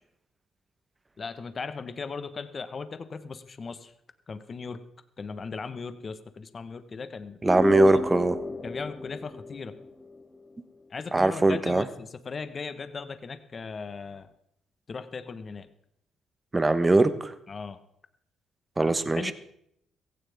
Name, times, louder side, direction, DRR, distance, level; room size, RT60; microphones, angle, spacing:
voice 1, 1.2-3.9 4.3-4.8 5.2-7.4 7.9-8.0 8.6-9.7 10.9-14.3 14.9-15.7 17.5-17.8 19.1-19.3, left 5 dB, 40° left, 11 dB, 1.2 m, -37 dB
sound 1, 7.4-10.4, left 3 dB, 20° left, 2.6 m, -31 dB
voice 2, 7.4-8.4 11.1-11.8 16.5-17.3 18.8-19.3, right 2 dB, 20° right, 12 dB, 1.0 m, -21 dB
16.5 x 15.5 x 3.6 m, 0.73 s
cardioid pair, 90°, 0 cm